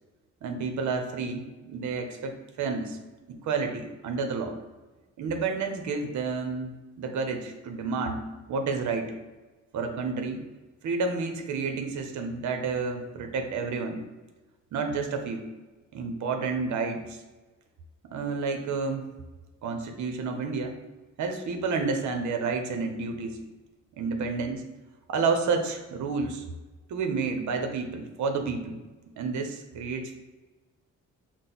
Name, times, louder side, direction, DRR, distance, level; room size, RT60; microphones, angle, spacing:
voice 1, 0.4-3.0 3.3-4.6 5.2-9.1 9.7-10.5 10.8-14.0 14.7-15.4 15.9-17.2 18.0-19.0 19.6-20.8 21.2-23.4 23.9-24.6 25.1-26.4 26.9-28.8 29.2-30.1, right 4 dB, 70° right, 5 dB, 0.8 m, -30 dB
6.3 x 2.1 x 3.9 m, 1.2 s
cardioid pair, 90°, 30 cm